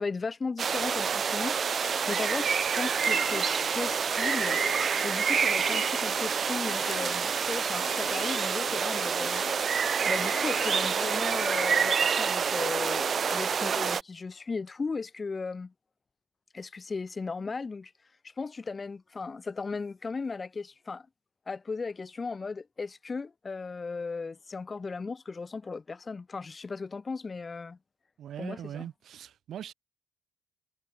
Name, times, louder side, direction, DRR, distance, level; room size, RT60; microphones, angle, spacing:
voice 1, 0.0-1.6 2.1-4.6 5.0-9.8 10.0-15.7 16.5-17.9 18.2-21.1 21.5-27.8 28.4-28.9, left 4 dB, 20° left, 1.4 m, -36 dB
sound 1, 0.6-14.0, right 6 dB, 30° right, 0.5 m, -27 dB
sound 2, 1.7-11.2, left 8 dB, 35° left, 3.0 m, -43 dB
voice 2, 28.2-29.7, right 10 dB, 45° right, 2.5 m, -41 dB
cardioid pair, 170°, 0 cm